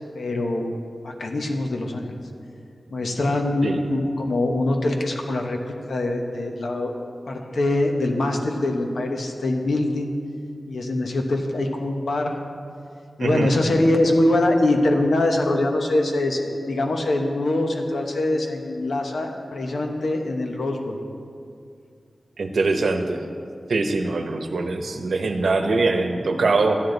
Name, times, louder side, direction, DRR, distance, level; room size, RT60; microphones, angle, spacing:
voice 1, 0.1-0.7 1.0-2.2 2.9-5.6 5.9-7.0 7.3-10.1 10.7-12.4 13.2-21.0, left 1 dB, 85° left, 2 dB, 1.1 m, -23 dB
voice 2, 13.2-13.5 22.4-23.2 23.7-26.8, right 3 dB, 90° right, 5 dB, 0.9 m, -22 dB
12.5 x 9.7 x 4.0 m, 2.4 s
wide cardioid pair, 95°, 0 cm